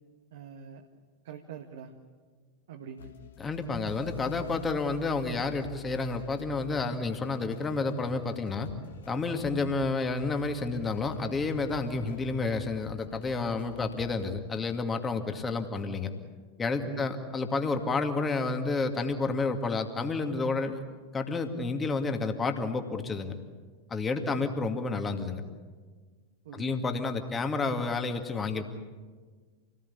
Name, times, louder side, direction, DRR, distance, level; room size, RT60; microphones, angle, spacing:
voice 1, 0.3-0.9 1.2-2.0 2.7-3.1 9.3-9.5 16.8-17.0 24.2-24.5 26.4-26.8, right 7 dB, 55° right, 3 dB, 1.6 m, -44 dB
sound 1, 3.0-14.2, left 7 dB, 65° left, 1.9 m, -47 dB
voice 2, 3.4-8.7 9.1-16.1 16.6-20.8 21.1-23.3 23.9-25.4 26.5-28.7, left 3 dB, 15° left, 6 dB, 2.3 m, -30 dB
28.0 x 19.0 x 8.7 m, 1.5 s
figure-of-eight pair, 90°, 0 cm